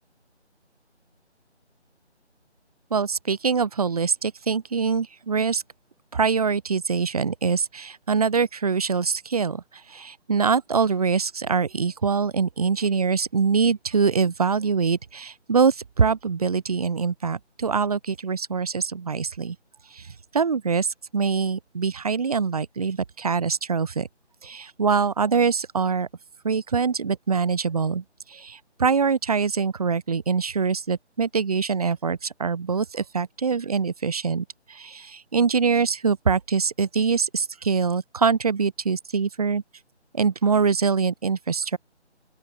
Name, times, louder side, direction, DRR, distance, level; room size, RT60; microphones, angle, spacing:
voice 1, 2.9-5.6 6.1-9.6 9.9-19.6 19.9-24.1 24.4-26.1 26.4-39.6 40.1-41.8, right 5 dB, 30° right, 2.5 m, -24 dB
open air
figure-of-eight pair, 165°, 35 cm